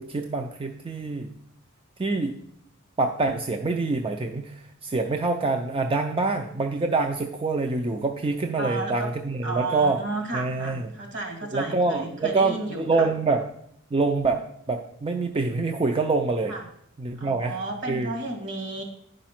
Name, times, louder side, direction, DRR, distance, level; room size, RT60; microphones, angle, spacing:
voice 1, 0.0-1.3 2.0-2.4 3.0-10.0 10.3-10.9 11.4-13.5 13.9-16.6 17.0-17.6 17.9-18.1, right 3 dB, 25° right, 4 dB, 0.5 m, -26 dB
voice 2, 8.6-9.1 9.4-13.1 16.5-16.6 17.2-18.8, right 2 dB, 60° right, 2 dB, 2.3 m, -33 dB
10.0 x 5.2 x 5.9 m, 0.72 s
head